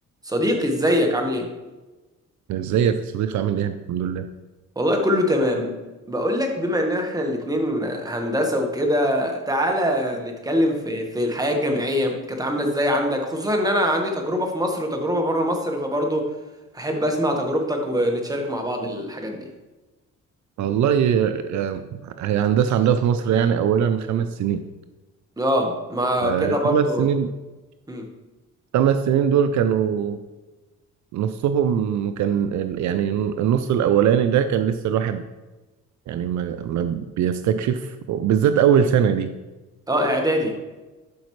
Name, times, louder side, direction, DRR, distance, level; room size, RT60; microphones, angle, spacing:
voice 1, 0.2-1.5 4.7-5.7 6.1-16.2 16.7-19.5 25.4-27.1 27.9-28.0 39.9-40.5, equal, 10° right, 2 dB, 1.4 m, -23 dB
voice 2, 2.5-4.2 20.6-24.6 26.2-27.3 28.7-30.2 31.1-35.2 36.1-39.3, right 8 dB, 70° right, 9 dB, 0.5 m, -21 dB
11.5 x 5.0 x 3.2 m, 1.2 s
cardioid pair, 90°, 30 cm